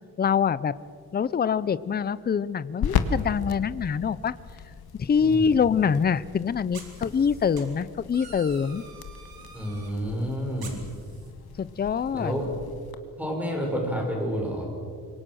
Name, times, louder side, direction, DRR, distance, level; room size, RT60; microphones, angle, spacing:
voice 1, 0.2-0.7 1.1-4.3 5.0-8.8 11.6-12.3, left 6 dB, 25° left, 17 dB, 0.5 m, -25 dB
sound 1, 0.8-12.9, left 7 dB, 85° left, 1.6 m, -36 dB
voice 2, 5.2-5.5 9.5-10.8 12.1-12.5 13.2-14.7, equal, 5° right, 0 dB, 6.2 m, -29 dB
sound 2, 5.9-6.0 6.7-7.6 8.1-9.9 10.6-11.3, right 5 dB, 75° right, 4.3 m, -47 dB
26.5 x 23.5 x 6.3 m, 2.1 s
wide cardioid pair, 155°, 36 cm